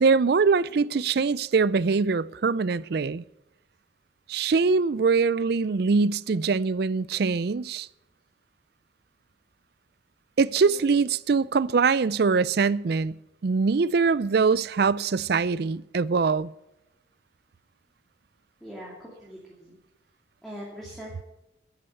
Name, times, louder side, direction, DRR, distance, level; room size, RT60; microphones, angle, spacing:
voice 1, 0.0-3.2 4.3-7.9 10.4-13.1 13.4-16.5, right 4 dB, 55° right, 0.4 m, -23 dB
voice 2, 10.6-10.9 18.6-19.8 20.4-21.2, equal, ahead, 2.6 m, -42 dB
12.5 x 8.8 x 7.8 m
head